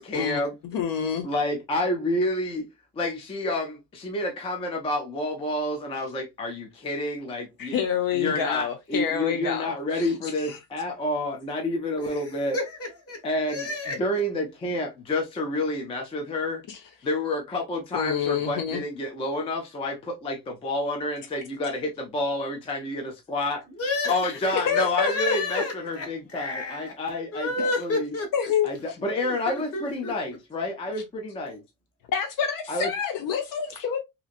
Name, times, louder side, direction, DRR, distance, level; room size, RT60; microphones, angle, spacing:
voice 1, 0.0-0.5 1.2-2.7 3.0-7.7 8.1-12.6 13.2-13.7 14.0-16.6 17.0-23.6 24.1-28.1 28.6-31.6 32.7-32.9, left 1 dB, 15° left, 0.3 m, -29 dB
voice 2, 0.7-1.3 7.6-10.6 16.7-16.8 17.9-18.8 24.2-25.6 28.3-28.7 32.1-34.0, left 7 dB, 65° left, 0.6 m, -27 dB
voice 3, 12.0-14.0 23.8-24.2 24.5-27.0 27.3-28.5 29.1-30.2, left 2 dB, 40° left, 1.0 m, -31 dB
2.9 x 2.5 x 2.3 m
cardioid pair, 175°, 37 cm